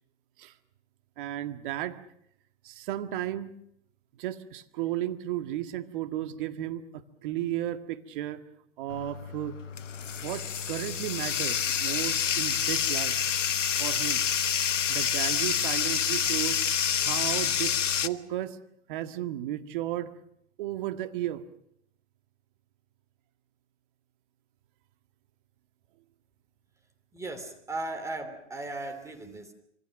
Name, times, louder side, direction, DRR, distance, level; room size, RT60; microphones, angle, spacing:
voice 1, 1.2-2.0 2.6-3.5 4.2-8.4 8.8-9.6 10.2-13.1 13.8-14.2 14.5-14.6 14.9-16.6 17.0-18.6 18.9-20.1 20.6-21.4, right 13 dB, 45° right, 9 dB, 1.8 m, -34 dB
Bathtub (filling or washing), 8.9-18.1, left 8 dB, 85° left, 1.3 m, -28 dB
voice 2, 27.1-29.5, right 2 dB, 10° right, 6 dB, 2.9 m, -37 dB
26.0 x 25.5 x 6.5 m, 0.74 s
hypercardioid pair, 135°, 36 cm